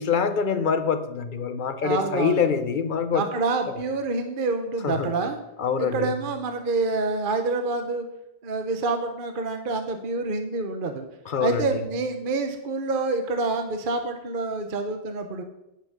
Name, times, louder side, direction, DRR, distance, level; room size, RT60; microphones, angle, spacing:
voice 1, 0.0-3.2 4.8-5.1 5.6-6.1 11.3-11.8, left 6 dB, 45° left, 0.9 m, -25 dB
voice 2, 1.8-2.4 3.1-5.4 5.8-8.0 8.4-11.0 11.4-15.4, right 3 dB, 45° right, 1.0 m, -27 dB
10.0 x 5.9 x 6.6 m
omnidirectional pair, 1.3 m